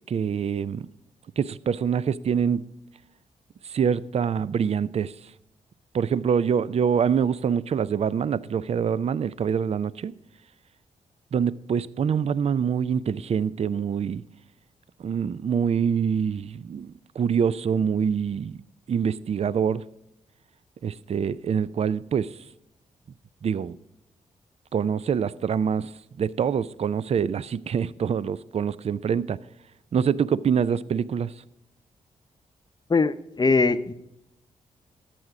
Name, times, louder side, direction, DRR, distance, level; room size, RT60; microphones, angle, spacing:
voice 1, 0.1-0.9 1.4-2.6 3.6-5.1 5.9-10.1 11.3-14.2 15.0-18.6 18.9-19.8 20.8-22.3 23.4-23.8 24.7-25.9 26.2-29.4 29.9-31.3, right 7 dB, 45° right, 0.4 m, -25 dB
voice 2, 32.9-33.9, left 4 dB, 30° left, 0.7 m, -21 dB
12.0 x 7.6 x 4.8 m
supercardioid pair, 50°, 14 cm